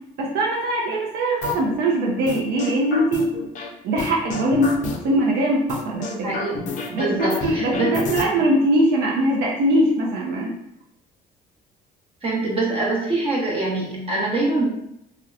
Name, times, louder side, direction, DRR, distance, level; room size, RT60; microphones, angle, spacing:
voice 1, 0.2-3.3 3.8-4.7 5.0-6.1 6.9-10.5, right 1 dB, 70° right, -2 dB, 0.5 m, -21 dB
sound 1, 1.4-1.8 2.3-3.7 4.0-5.2 5.7-8.2, left 4 dB, 45° left, 0.4 m, -30 dB
voice 2, 6.1-8.0 12.2-14.6, right 2 dB, 35° right, -4 dB, 0.8 m, -24 dB
2.7 x 2.1 x 2.4 m, 0.78 s
cardioid pair, 100°, 17 cm